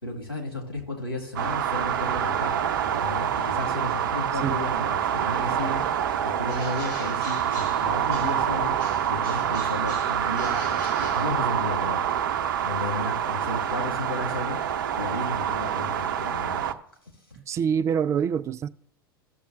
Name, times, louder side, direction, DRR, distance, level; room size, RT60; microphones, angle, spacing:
voice 1, 0.0-2.6 2.9-5.9 6.2-8.8 9.1-12.0 12.6-14.6 15.0-16.7, left 2 dB, 85° left, 2.4 m, -33 dB
sound 1, 1.4-16.7, right 9 dB, 60° right, 0.6 m, -26 dB
Bird, 6.4-8.5 8.8-11.9, left 2 dB, 55° left, 4.2 m, -44 dB
voice 2, 17.4-18.7, right 7 dB, 25° right, 0.3 m, -25 dB
15.5 x 6.8 x 2.6 m
figure-of-eight pair, 85°, 12 cm